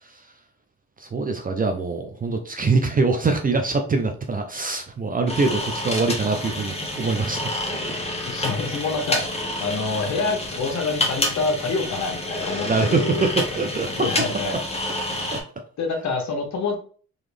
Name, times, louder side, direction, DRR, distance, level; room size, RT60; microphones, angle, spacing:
voice 1, 1.0-7.9 12.7-14.1 15.3-15.4, right 3 dB, 30° right, 5 dB, 0.6 m, -24 dB
sound 1, 5.3-15.4, left 1 dB, 20° left, 1.3 m, -28 dB
voice 2, 8.2-13.3 14.0-14.6 15.8-16.8, left 4 dB, 65° left, 2 dB, 1.2 m, -27 dB
4.0 x 3.0 x 3.3 m, 0.43 s
cardioid pair, 90°, 30 cm